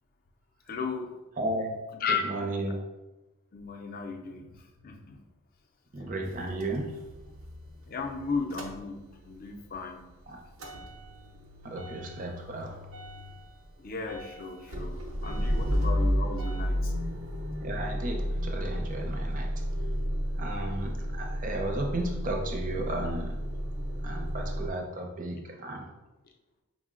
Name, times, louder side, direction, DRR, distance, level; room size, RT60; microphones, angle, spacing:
voice 1, 0.7-1.1 1.9-2.2 3.5-5.2 7.9-10.0 13.8-16.9 20.9-21.0, left 5 dB, 45° left, 3 dB, 0.4 m, -35 dB
voice 2, 1.4-1.8 2.2-2.8 5.9-7.0 10.3-10.4 11.6-12.8 17.6-19.5 20.4-23.4 24.0-25.9, right 1 dB, 40° right, 2 dB, 0.6 m, -34 dB
Motor vehicle (road) / Engine starting / Idling, 6.2-9.4 9.7-24.7, equal, 75° right, 0.7 m, -33 dB
4.8 x 2.1 x 3.6 m, 1.1 s
head